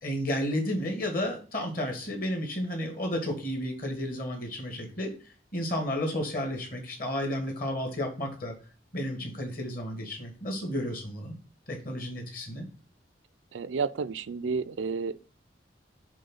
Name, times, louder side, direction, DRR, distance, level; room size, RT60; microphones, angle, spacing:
voice 1, 0.0-5.1 5.5-8.5 8.9-11.3 11.7-12.7, left 1 dB, 50° left, 2.1 m, -32 dB
voice 2, 13.5-15.2, right 5 dB, 90° right, 0.5 m, -31 dB
7.5 x 3.7 x 5.6 m
head